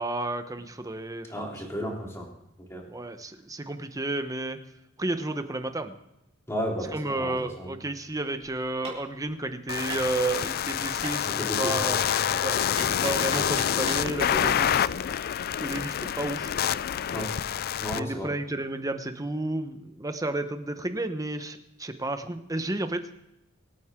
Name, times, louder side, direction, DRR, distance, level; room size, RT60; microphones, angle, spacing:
voice 1, 0.0-1.4 2.9-4.6 5.0-5.9 6.9-12.1 12.4-14.9 15.6-16.5 17.9-23.1, right 2 dB, 15° right, 8 dB, 1.0 m, -32 dB
voice 2, 1.3-2.3 2.7-2.8 6.5-7.7 11.2-11.8 17.1-17.3 17.8-18.3, equal, 15° left, -1 dB, 3.2 m, -33 dB
Hammer, 8.8-14.1, right 3 dB, 35° right, 4.2 m, -42 dB
sound 1, 9.7-18.0, left 9 dB, 50° left, 0.4 m, -27 dB
24.5 x 9.2 x 3.7 m, 0.86 s
head